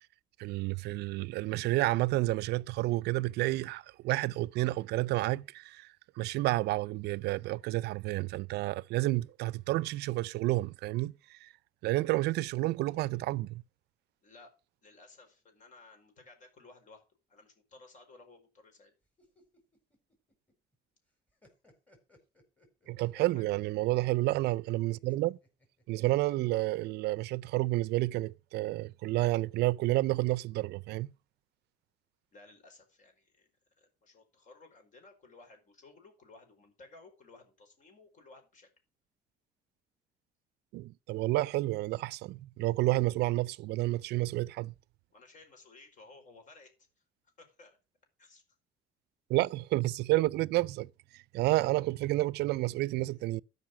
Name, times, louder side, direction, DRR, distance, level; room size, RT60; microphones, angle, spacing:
voice 1, 0.4-11.5 11.8-13.6 22.9-25.4 25.9-31.1 40.7-44.7 49.3-53.4, right 18 dB, 75° right, 0.5 m, -30 dB
voice 2, 14.8-17.0 17.3-18.9 23.1-23.4 32.3-33.5 33.8-38.7 45.1-46.7 47.4-47.8 48.2-48.4, left 3 dB, 50° left, 4.7 m, -56 dB
sound 1, 19.0-20.7 21.1-23.3 24.9-26.4, left 1 dB, 10° left, 4.6 m, -65 dB
13.0 x 5.5 x 6.3 m
cardioid pair, 110°, 17 cm